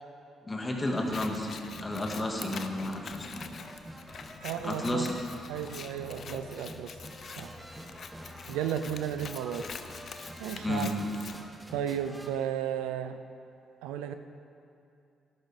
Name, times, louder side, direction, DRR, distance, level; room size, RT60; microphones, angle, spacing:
voice 1, 0.5-1.5 1.8-3.5 4.6-5.2 10.6-10.9, left 1 dB, 25° left, 0 dB, 2.1 m, -32 dB
sound 1, 0.8-12.3, equal, 15° right, 1.5 m, -48 dB
Scissors, 1.0-11.4, left 6 dB, 55° left, 0.6 m, -45 dB
voice 2, 4.4-5.1 5.5-6.9 7.4-7.5 8.5-9.6 10.4-10.9 11.7-13.2 13.8-14.1, right 9 dB, 85° right, 9 dB, 0.5 m, -33 dB
13.0 x 11.5 x 3.7 m, 2.5 s
hypercardioid pair, 50°, 0 cm